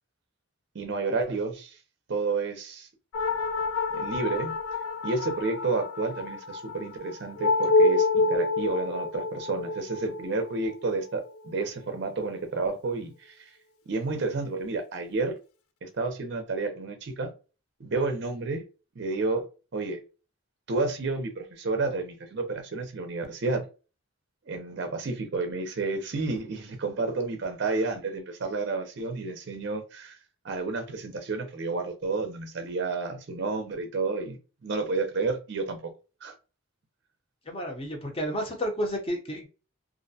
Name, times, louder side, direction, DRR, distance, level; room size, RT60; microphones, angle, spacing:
voice 1, 0.7-1.8 2.1-2.9 3.9-4.5 5.0-13.6 13.9-15.4 15.8-17.3 17.8-18.6 19.0-19.4 19.7-20.0 20.7-23.6 24.5-30.2 30.4-35.9 36.2-36.3, right 3 dB, 50° right, 0.5 m, -30 dB
sound 1, 3.1-12.0, left 3 dB, 80° left, 0.4 m, -28 dB
voice 2, 37.5-39.5, equal, 25° left, 0.6 m, -31 dB
2.4 x 2.1 x 2.6 m
head